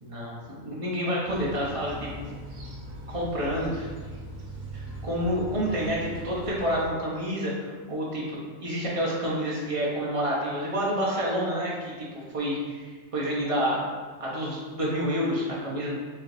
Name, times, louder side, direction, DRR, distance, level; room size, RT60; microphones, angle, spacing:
voice 1, 0.0-2.1 3.1-3.9 4.7-13.9 14.2-15.9, equal, 30° right, -5 dB, 0.8 m, -29 dB
sound 1, 1.2-6.9, right 1 dB, 90° right, 1.3 m, -40 dB
4.6 x 3.3 x 2.6 m, 1.4 s
omnidirectional pair, 1.4 m